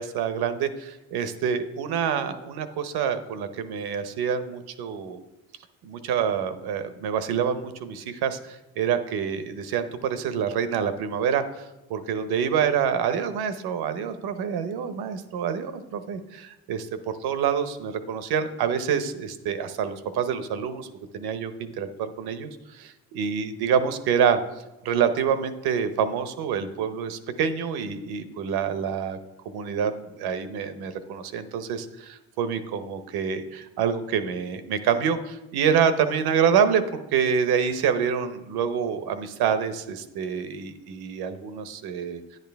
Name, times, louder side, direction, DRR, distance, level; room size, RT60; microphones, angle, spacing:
voice 1, 0.0-5.2 5.8-20.9 21.1-24.4 24.8-29.2 29.4-42.2, right 7 dB, 65° right, 10 dB, 1.0 m, -27 dB
10.0 x 9.2 x 3.5 m, 1.0 s
supercardioid pair, 80°, 42 cm